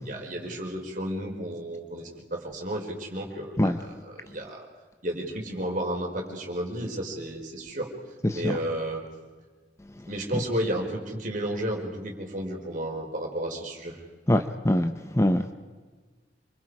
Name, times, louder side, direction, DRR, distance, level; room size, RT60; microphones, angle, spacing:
voice 1, 0.0-4.7 5.0-7.9 8.3-9.0 10.1-14.0, right 1 dB, 45° right, 0 dB, 4.9 m, -32 dB
voice 2, 14.3-14.9 15.2-15.5, left 1 dB, 15° left, 7 dB, 0.9 m, -22 dB
28.0 x 25.5 x 5.0 m, 1.3 s
head